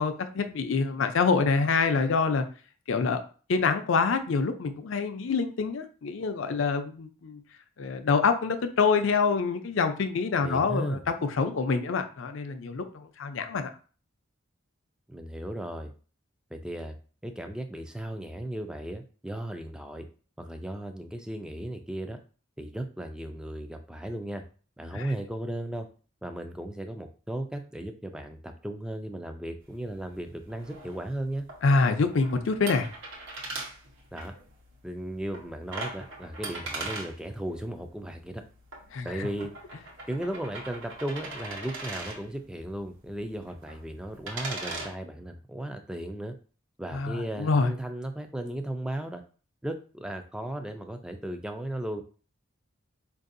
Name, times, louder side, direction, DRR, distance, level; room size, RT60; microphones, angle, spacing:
voice 1, 0.0-2.4 2.9-3.2 3.5-7.4 7.8-13.7 24.9-25.1 31.6-32.9 38.9-39.1 46.9-47.7, left 4 dB, 65° left, 8 dB, 0.5 m, -26 dB
voice 2, 10.4-11.0 15.1-15.9 16.5-17.0 17.2-20.1 20.4-22.2 22.6-24.4 24.8-25.9 26.2-31.5 34.1-34.3 34.8-38.4 39.0-39.5 40.1-46.3 46.8-49.2 49.6-52.0, right 1 dB, 5° right, 6 dB, 0.3 m, -36 dB
sound 1, 29.6-44.9, right 2 dB, 70° right, 1.0 m, -41 dB
4.6 x 2.6 x 2.5 m, 0.38 s
head